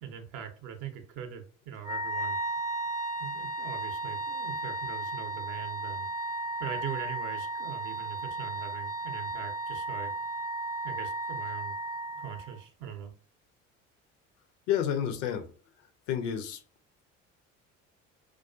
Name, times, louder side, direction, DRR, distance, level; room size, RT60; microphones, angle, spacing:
voice 1, 0.0-2.4 3.2-6.1 6.6-10.1 10.8-11.8 12.2-13.1, right 8 dB, 50° right, 0.6 m, -41 dB
Wind instrument woodwind instrument, 1.8-12.6, right 2 dB, 10° right, 0.5 m, -35 dB
voice 2, 14.7-15.5 16.1-16.6, left 9 dB, 65° left, 0.5 m, -29 dB
2.3 x 2.3 x 2.3 m
figure-of-eight pair, 55°, 38 cm